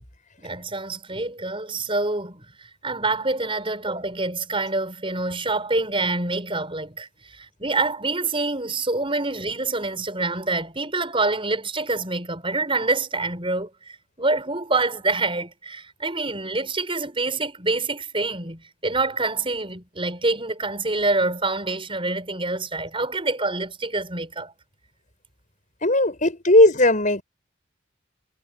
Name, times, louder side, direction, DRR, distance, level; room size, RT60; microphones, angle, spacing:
voice 1, 0.4-2.4 2.8-24.5, right 3 dB, 25° right, 6.7 m, -26 dB
voice 2, 25.8-27.2, left 1 dB, 40° left, 7.8 m, -17 dB
head